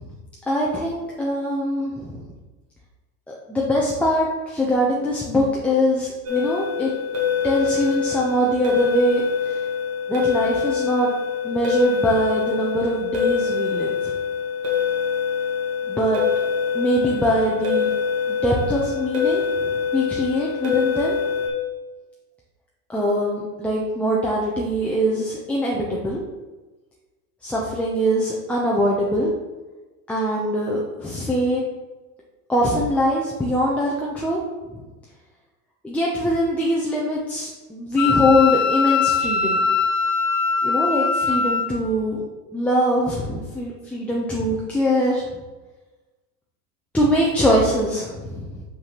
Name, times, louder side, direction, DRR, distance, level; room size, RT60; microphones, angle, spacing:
voice 1, 0.5-2.3 3.3-6.9 7.4-9.6 10.1-11.1 11.4-14.1 15.9-16.2 16.7-17.9 18.3-19.4 19.9-21.1 22.9-26.2 27.4-29.3 30.1-31.6 32.5-34.4 35.8-39.6 40.6-42.2 42.5-45.2 46.9-48.6, equal, 5° left, -4 dB, 0.4 m, -22 dB
sound 1, 6.3-21.5, left 6 dB, 30° right, 1.6 m, -24 dB
Wind instrument woodwind instrument, 38.0-41.7, left 5 dB, 55° left, 0.8 m, -21 dB
5.8 x 5.6 x 2.9 m, 1.2 s
hypercardioid pair, 105°, 48 cm